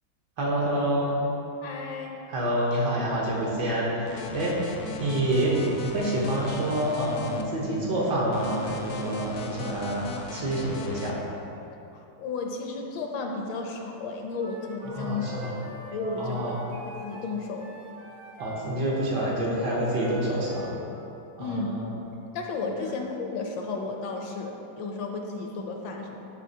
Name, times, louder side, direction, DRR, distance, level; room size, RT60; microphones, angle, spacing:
voice 1, 0.4-1.2 2.3-4.7 5.0-5.5 5.8-11.1 14.9-15.6 16.2-16.6 18.4-20.7 21.4-21.8 22.8-22.9, right 1 dB, 65° right, -5 dB, 1.7 m, -27 dB
voice 2, 1.6-2.1 11.9-15.3 15.9-16.4 17.0-17.8 21.4-21.7 22.3-26.3, left 4 dB, 75° left, 2 dB, 1.3 m, -33 dB
sound 1, 4.0-7.4 8.3-11.1, left 3 dB, 90° left, 0.7 m, -38 dB
Wind instrument woodwind instrument, 14.4-20.8, right 1 dB, 45° right, 0.5 m, -43 dB
11.5 x 4.0 x 2.8 m, 2.8 s
omnidirectional pair, 2.2 m